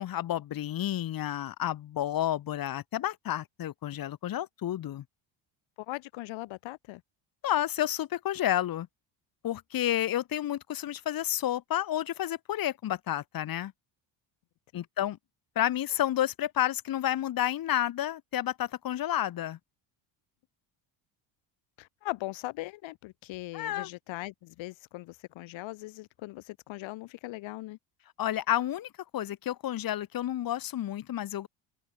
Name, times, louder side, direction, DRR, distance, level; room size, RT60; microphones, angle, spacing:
voice 1, 0.0-5.0 7.4-8.9 9.4-13.7 14.7-15.2 15.5-19.6 23.5-23.9 28.2-31.5, left 12 dB, 45° left, 2.8 m, -30 dB
voice 2, 5.9-7.0 14.7-14.8 21.8-27.8, left 19 dB, 70° left, 3.8 m, -40 dB
open air
cardioid pair, 150°, 48 cm